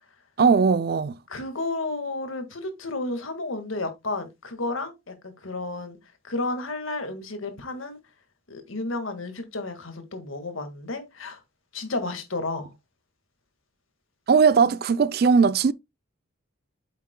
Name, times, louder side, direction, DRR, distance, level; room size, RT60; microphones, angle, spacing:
voice 1, 0.4-1.2 14.3-15.7, right 5 dB, 50° right, 0.4 m, -19 dB
voice 2, 1.3-6.0 6.2-8.0 8.5-11.4 11.7-12.7, left 2 dB, 80° left, 1.8 m, -32 dB
8.3 x 7.4 x 2.2 m
head